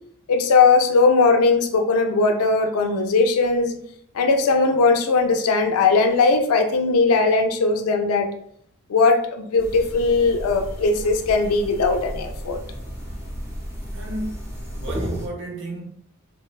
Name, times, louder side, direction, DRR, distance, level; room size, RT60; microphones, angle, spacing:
voice 1, 0.3-3.7 4.1-8.3 8.9-12.6, left 4 dB, 80° left, 0.4 m, -19 dB
sound 1, 9.6-15.3, equal, 15° right, 0.5 m, -33 dB
voice 2, 13.9-15.8, right 2 dB, 55° right, 0.6 m, -33 dB
3.2 x 2.1 x 2.2 m
head